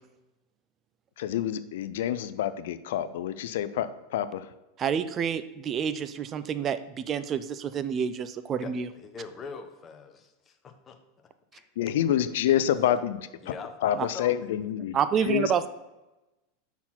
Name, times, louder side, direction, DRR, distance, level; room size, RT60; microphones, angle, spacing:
voice 1, 1.2-4.5 11.8-13.3 13.8-14.9 15.2-15.5, left 10 dB, 75° left, 13 dB, 0.4 m, -27 dB
voice 2, 4.8-8.9 14.0-14.1 14.9-15.7, right 7 dB, 35° right, 12 dB, 0.4 m, -28 dB
voice 3, 8.9-11.0 11.5-11.7 13.4-14.5, left 5 dB, 30° left, 7 dB, 1.0 m, -42 dB
6.0 x 4.4 x 5.6 m, 1.0 s
hypercardioid pair, 110°, 0 cm